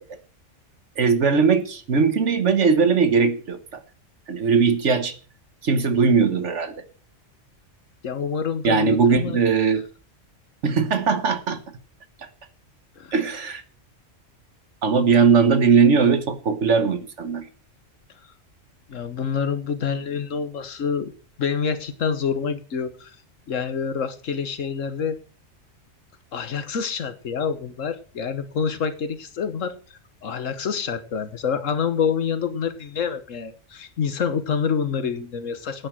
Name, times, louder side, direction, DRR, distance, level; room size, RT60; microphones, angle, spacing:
voice 1, 1.0-3.6 4.3-5.1 5.6-6.7 8.6-9.8 10.6-11.6 13.1-13.6 14.8-17.4, right 5 dB, 70° right, 10 dB, 1.5 m, -19 dB
voice 2, 8.0-9.4 13.0-13.1 18.9-21.1 21.4-23.1 23.5-25.2 26.3-35.9, left 6 dB, 80° left, 11 dB, 1.6 m, -27 dB
10.0 x 9.2 x 6.2 m, 0.39 s
omnidirectional pair, 1.3 m